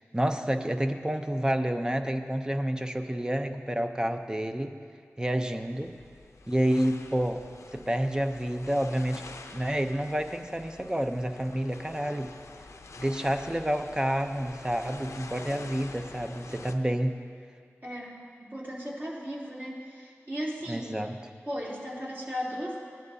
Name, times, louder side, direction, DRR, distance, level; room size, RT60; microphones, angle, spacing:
voice 1, 0.0-4.7 5.2-5.9 6.5-7.4 7.7-9.2 9.5-12.3 13.0-17.2 20.7-21.2, equal, 15° right, 7 dB, 0.7 m, -29 dB
sound 1, 5.4-16.7, left 3 dB, 80° left, 0.6 m, -47 dB
voice 2, 17.8-21.0 21.5-22.8, equal, 40° right, -6 dB, 3.2 m, -36 dB
18.0 x 10.5 x 2.8 m, 2.1 s
cardioid pair, 45°, 5 cm